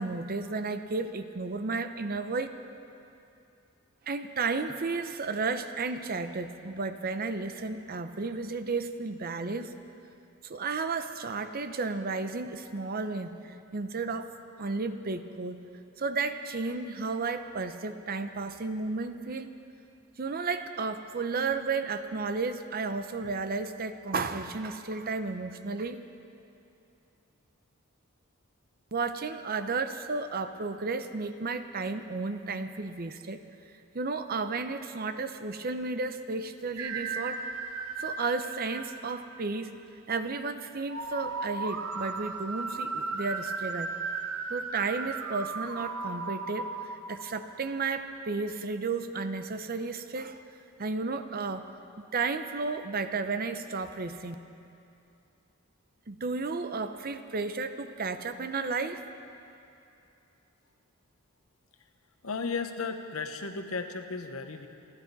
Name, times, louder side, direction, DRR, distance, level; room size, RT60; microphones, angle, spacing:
voice 1, 0.0-2.5 4.1-9.7 10.5-14.3 14.6-15.6 16.0-19.5 20.2-26.0 28.9-33.4 33.9-37.4 38.0-39.7 40.1-43.9 44.5-50.4 50.8-51.7 52.1-54.4 56.1-59.0, right 4 dB, 45° right, 9 dB, 0.7 m, -33 dB
sound 1, 36.8-39.6 40.9-48.0, right 4 dB, 90° right, 0.9 m, -36 dB
voice 2, 62.2-64.7, left 4 dB, 75° left, 7 dB, 1.0 m, -34 dB
29.0 x 11.0 x 4.1 m, 2.7 s
head